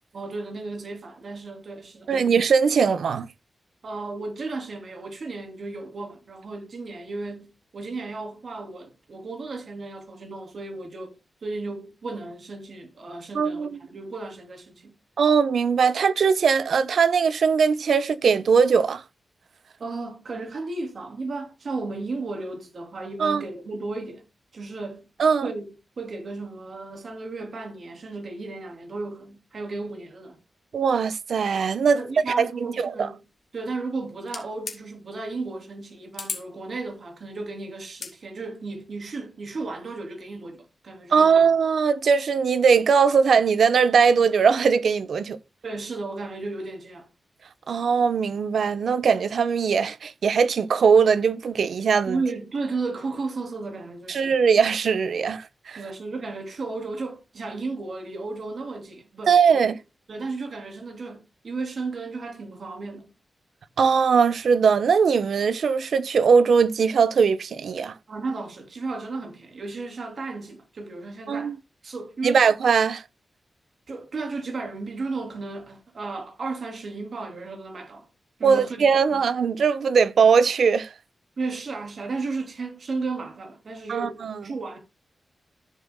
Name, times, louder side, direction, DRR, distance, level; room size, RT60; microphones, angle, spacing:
voice 1, 0.1-2.4 3.8-11.2 11.4-14.9 19.8-24.3 24.5-25.1 25.4-25.7 26.0-30.4 31.9-33.2 33.5-41.5 45.6-47.1 52.1-54.4 55.7-59.4 60.1-63.1 68.1-71.6 71.8-72.4 73.9-78.1 78.4-79.2 81.4-84.8, right 3 dB, 50° right, 3.0 m, -34 dB
voice 2, 2.1-3.3 13.3-13.7 15.2-19.0 23.2-23.4 25.2-25.5 30.7-32.0 32.4-33.1 41.1-45.4 47.7-52.2 54.1-55.8 59.3-59.8 63.8-67.9 71.3-71.5 72.2-73.0 78.4-80.9 83.9-84.4, right 6 dB, 70° right, 0.9 m, -20 dB
sound 1, 34.3-34.8 36.1-36.5 37.9-38.2, left 4 dB, 50° left, 2.4 m, -34 dB
14.5 x 7.3 x 2.2 m
wide cardioid pair, 150°, 0 cm